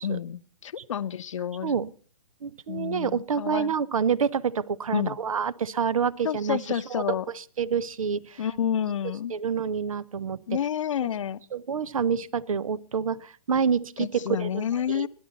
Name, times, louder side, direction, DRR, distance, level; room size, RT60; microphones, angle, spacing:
voice 1, 0.0-1.7 2.7-3.7 4.9-5.2 6.2-7.2 8.4-9.3 10.5-11.4 14.0-15.1, left 9 dB, 55° left, 14 dB, 0.9 m, -29 dB
voice 2, 2.4-7.0 7.3-8.4 9.3-10.4 11.0-11.1 11.5-15.1, right 6 dB, 60° right, 22 dB, 0.9 m, -28 dB
30.0 x 11.5 x 4.1 m, 0.40 s
figure-of-eight pair, 130°, 19 cm